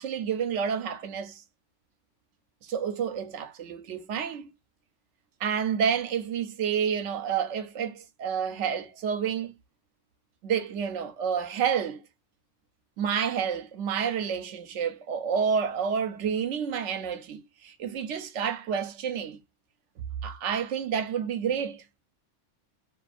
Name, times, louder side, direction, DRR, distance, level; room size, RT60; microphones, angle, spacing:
voice 1, 0.0-1.4 2.6-4.5 5.4-9.5 10.4-12.0 13.0-19.4 20.2-21.8, right 7 dB, 80° right, 0.9 m, -29 dB
2.4 x 2.4 x 2.4 m
omnidirectional pair, 1.3 m